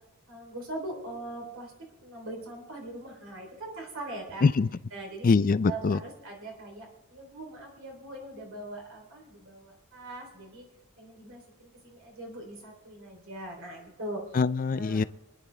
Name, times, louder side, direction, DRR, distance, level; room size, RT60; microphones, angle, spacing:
voice 1, 0.3-1.7 2.0-4.5 4.9-5.3 5.7-10.6 11.0-14.2 14.7-15.1, right 2 dB, 60° right, 0 dB, 3.4 m, -41 dB
voice 2, 5.2-6.0 14.3-15.0, left 4 dB, 40° left, 16 dB, 0.4 m, -23 dB
26.0 x 10.5 x 3.4 m, 0.98 s
head